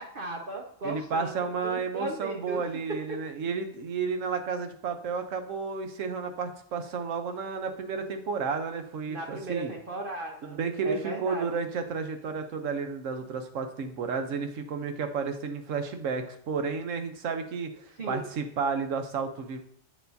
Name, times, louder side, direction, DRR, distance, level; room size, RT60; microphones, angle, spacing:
voice 1, 0.0-2.6 3.1-3.2 9.1-11.6 18.0-18.3, right 2 dB, 50° right, 1 dB, 0.8 m, -36 dB
voice 2, 0.8-9.7 10.4-19.6, right 5 dB, 90° right, 7 dB, 1.2 m, -32 dB
8.0 x 6.7 x 2.7 m, 0.63 s
omnidirectional pair, 1.3 m